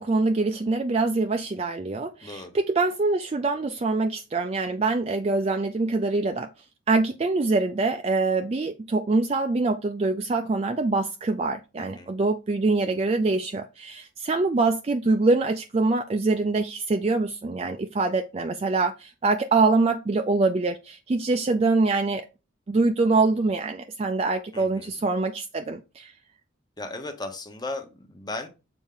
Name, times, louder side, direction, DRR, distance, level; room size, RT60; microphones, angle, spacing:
voice 1, 0.0-6.5 6.9-22.2 22.7-26.1, right 3 dB, 30° right, 0.3 m, -24 dB
voice 2, 2.2-2.6 11.8-12.1 24.5-24.9 26.8-28.5, left 2 dB, 20° left, 0.8 m, -36 dB
7.1 x 4.2 x 3.7 m
head